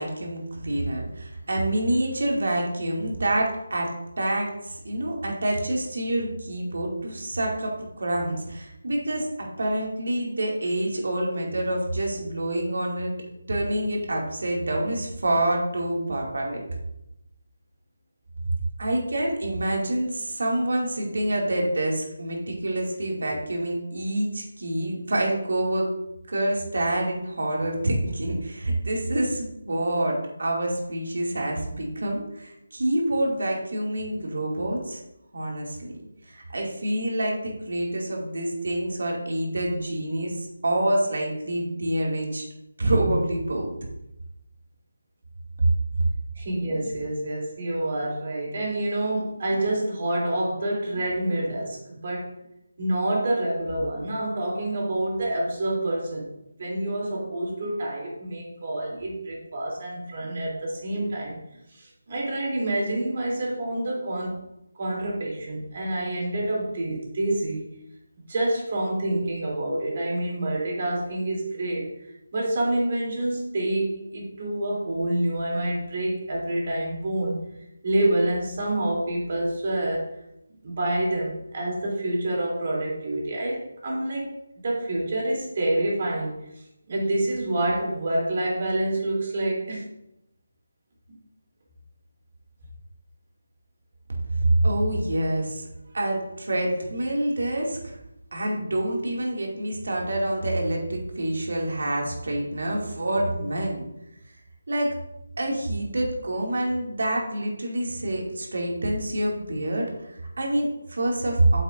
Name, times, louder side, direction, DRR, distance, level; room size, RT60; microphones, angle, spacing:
voice 1, 0.0-13.1 13.5-16.6 18.8-25.9 26.3-35.0 35.3-35.9 36.2-42.4 42.8-43.7 45.6-45.7 94.5-95.7 95.9-98.0 98.3-103.8 104.7-105.0 105.4-111.6, right 1 dB, 65° right, -1 dB, 2.4 m, -27 dB
voice 2, 46.3-52.3 52.8-56.3 56.6-64.4 64.8-67.6 68.2-71.9 72.3-77.5 77.8-80.1 80.6-84.3 84.6-86.3 86.9-89.8 91.1-91.2, right 1 dB, 45° right, -3 dB, 3.1 m, -27 dB
8.2 x 7.9 x 2.6 m, 0.85 s
figure-of-eight pair, 160°, 0 cm